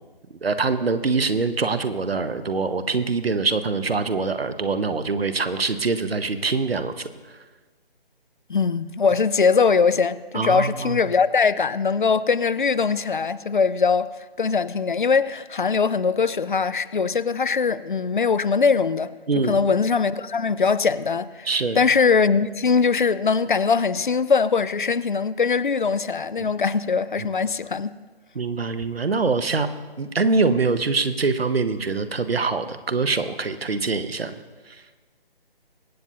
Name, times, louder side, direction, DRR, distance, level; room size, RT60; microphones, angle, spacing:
voice 1, 0.4-7.0 10.3-11.0 19.3-19.6 21.5-21.8 28.3-29.7 30.0-34.3, right 4 dB, 75° right, 1.0 m, -24 dB
voice 2, 8.5-14.1 14.4-19.1 19.4-21.5 21.8-27.9, left 5 dB, 55° left, 0.5 m, -21 dB
24.0 x 8.2 x 2.7 m
figure-of-eight pair, 150°, 30 cm